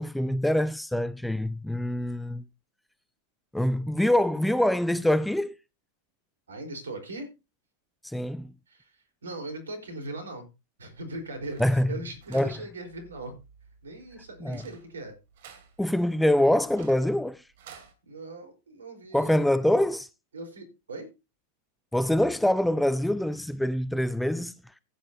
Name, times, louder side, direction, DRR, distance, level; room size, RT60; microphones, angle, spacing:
voice 1, 0.0-2.4 3.5-5.6 8.0-8.5 11.6-11.9 12.3-12.5 14.4-14.6 15.8-17.4 19.1-20.1 21.9-24.5, left 1 dB, 5° left, 0.6 m, -25 dB
voice 2, 6.5-7.3 8.7-10.4 10.8-13.3 13.8-15.2 18.1-19.5 20.3-21.1, right 2 dB, 70° right, 4.2 m, -39 dB
sound 1, 10.9-17.9, right 7 dB, 55° right, 2.5 m, -53 dB
15.5 x 9.6 x 2.8 m
figure-of-eight pair, 90°, 0 cm